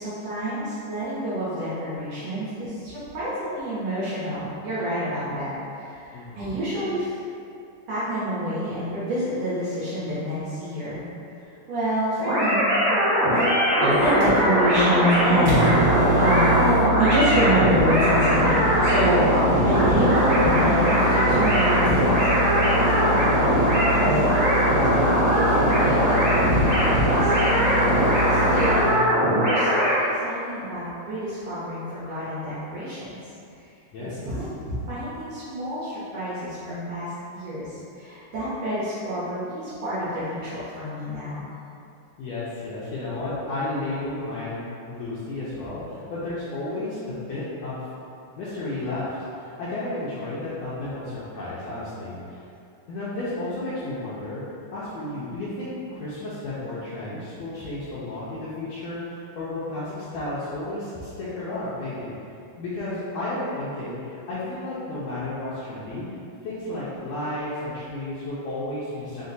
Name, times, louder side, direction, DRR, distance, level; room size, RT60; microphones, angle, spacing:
voice 1, 0.0-7.1 7.9-11.0 11.7-12.7 13.3-13.5 13.8-16.7 17.0-19.2 19.6-24.2 24.5-27.8 28.3-28.9 29.5-33.1 34.1-34.5 34.7-41.4, equal, 70° right, -11 dB, 1.5 m, -27 dB
voice 2, 6.1-6.6 33.9-34.1 42.2-47.8 48.4-52.4 52.9-54.4 54.7-62.1 62.6-64.0 64.3-66.0 66.4-69.2, left 2 dB, 80° left, -9 dB, 1.5 m, -32 dB
sound 1, 12.2-30.0, equal, 50° right, 1.6 m, -21 dB
Microwave oven, 13.9-29.0, right 1 dB, 85° right, 0.7 m, -26 dB
4.8 x 2.1 x 3.9 m, 2.6 s
omnidirectional pair, 3.5 m